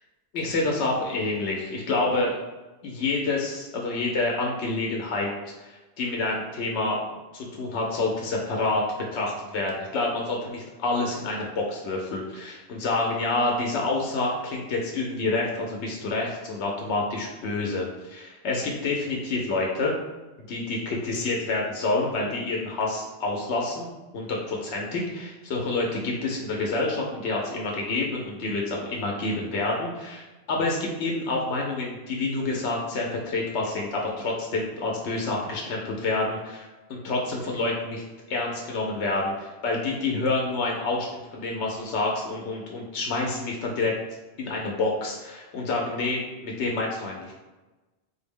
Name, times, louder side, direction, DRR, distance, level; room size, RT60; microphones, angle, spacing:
voice 1, 0.3-2.3 2.8-5.3 5.6-7.0 7.3-8.8 9.1-19.9 20.5-38.0 38.3-43.9 44.4-47.3, left 2 dB, 90° left, -1 dB, 0.9 m, -28 dB
3.8 x 2.0 x 3.5 m, 1.1 s
omnidirectional pair, 1.1 m